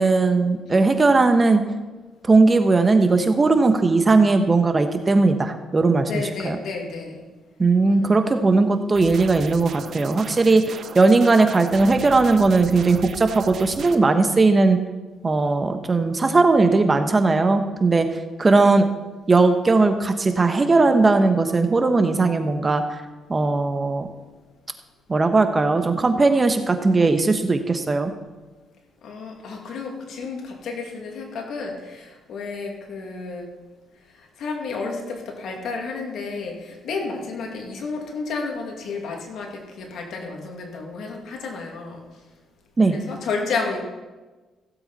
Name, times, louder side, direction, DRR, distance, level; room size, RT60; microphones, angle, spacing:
voice 1, 0.0-1.6 2.2-6.1 6.4-6.6 7.6-14.8 15.2-18.1 18.4-18.8 19.3-23.0 23.3-24.1 25.1-28.1 42.8-43.0, right 3 dB, 30° right, 7 dB, 1.2 m, -18 dB
voice 2, 6.1-7.2 7.9-8.3 29.0-33.5 34.2-42.0 42.9-43.8, left 4 dB, 70° left, 1 dB, 2.5 m, -31 dB
sound 1, 8.9-13.9, right 6 dB, 60° right, 0.8 m, -37 dB
16.0 x 8.0 x 4.2 m, 1.2 s
cardioid pair, 90°, 0 cm